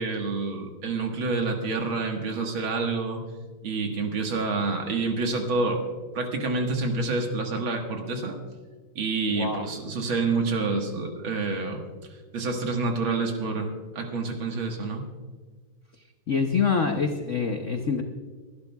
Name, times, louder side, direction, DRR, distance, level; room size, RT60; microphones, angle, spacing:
voice 1, 0.0-3.2 3.6-5.8 6.1-8.4 9.0-11.8 12.3-15.0, right 3 dB, 65° right, 3 dB, 2.3 m, -28 dB
voice 2, 9.3-9.6 16.3-18.0, left 5 dB, 60° left, 4 dB, 0.7 m, -25 dB
23.5 x 11.0 x 2.3 m, 1.5 s
omnidirectional pair, 2.4 m